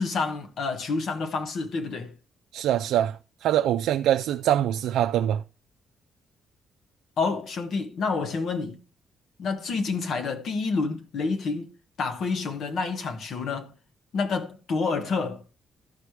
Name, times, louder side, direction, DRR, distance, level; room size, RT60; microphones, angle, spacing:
voice 1, 0.0-2.1 7.2-8.8 9.4-11.7 12.0-13.7 14.1-15.4, left 4 dB, 65° left, 1.3 m, -28 dB
voice 2, 2.5-5.4, right 11 dB, 85° right, 0.4 m, -24 dB
13.5 x 4.9 x 4.7 m
cardioid pair, 90°, 0 cm